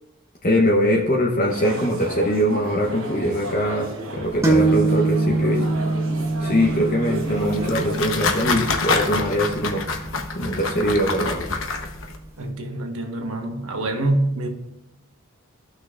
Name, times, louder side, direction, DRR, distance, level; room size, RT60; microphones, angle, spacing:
voice 1, 0.4-5.7 6.4-9.8 10.3-11.5, equal, 40° left, -1 dB, 0.9 m, -22 dB
sound 1, 1.5-8.0, right 2 dB, 65° right, 1.2 m, -34 dB
sound 2, 4.4-11.9, right 3 dB, 15° right, 1.3 m, -25 dB
sound 3, 7.2-12.2, left 4 dB, 60° left, 1.0 m, -27 dB
voice 2, 12.4-14.5, right 1 dB, 80° right, 4 dB, 1.3 m, -25 dB
14.5 x 6.0 x 2.5 m, 0.92 s
head